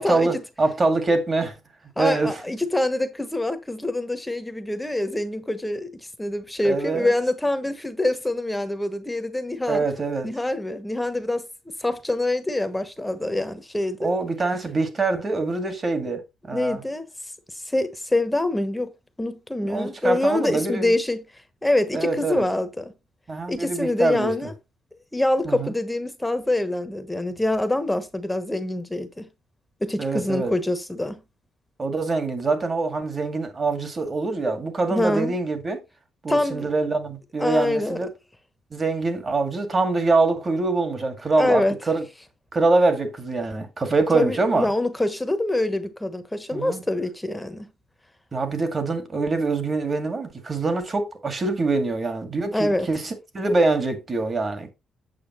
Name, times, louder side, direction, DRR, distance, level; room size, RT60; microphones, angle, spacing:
voice 1, 0.0-1.6 2.0-2.3 6.6-7.1 9.7-10.3 14.0-16.2 16.5-16.8 19.6-20.9 21.9-22.5 23.3-24.3 25.4-25.7 30.0-30.5 31.8-35.8 36.2-38.1 38.7-42.0 42.5-44.7 46.5-46.8 48.3-54.7, right 3 dB, 35° right, 2.1 m, -24 dB
voice 2, 2.0-5.9 6.2-9.8 10.2-11.5 11.8-14.1 16.5-17.1 17.6-18.9 19.2-21.2 21.6-22.9 23.5-24.5 25.1-29.3 29.8-31.2 34.9-35.3 36.3-36.7 37.4-38.0 41.4-41.8 44.1-47.7 52.5-52.9, left 1 dB, 10° left, 1.1 m, -25 dB
8.5 x 6.8 x 3.0 m
cardioid pair, 90°, 0 cm